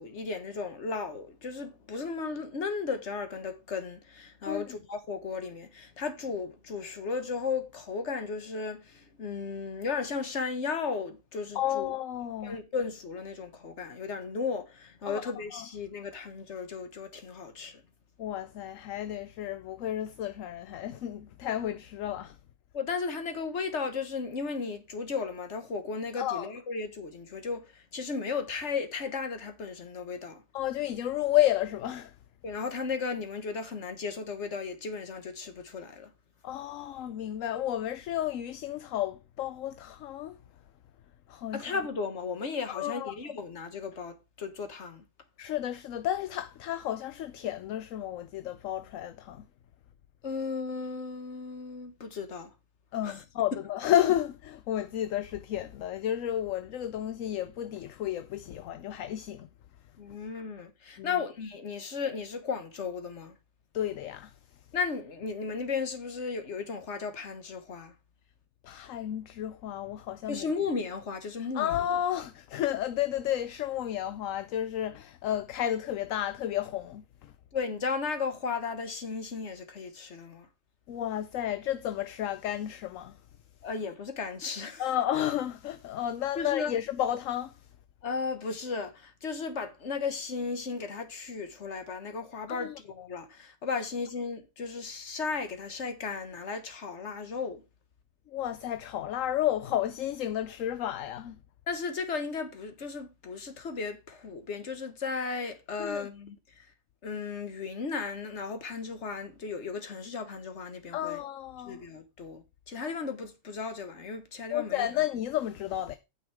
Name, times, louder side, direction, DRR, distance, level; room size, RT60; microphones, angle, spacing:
voice 1, 0.0-11.9 12.4-17.8 22.7-30.4 32.4-36.1 41.5-45.0 50.2-52.5 53.0-53.2 53.5-53.6 60.0-63.3 64.7-67.9 70.3-71.8 77.5-80.5 83.6-84.9 86.3-86.7 88.0-97.6 101.7-106.7 107.0-111.2 111.6-114.9, left 5 dB, 55° left, 1.6 m, -35 dB
voice 2, 11.5-12.6 15.1-15.2 15.5-15.6 18.2-22.4 26.2-26.5 30.5-32.1 36.4-40.4 41.3-41.6 42.7-43.1 45.4-49.4 52.9-59.5 61.0-61.2 63.7-64.3 68.6-70.5 71.5-77.3 80.9-83.2 84.8-87.5 92.5-92.8 98.3-101.4 105.8-106.1 110.9-111.8 114.5-116.0, left 12 dB, 70° left, 1.0 m, -32 dB
9.2 x 5.7 x 4.8 m
omnidirectional pair, 1.5 m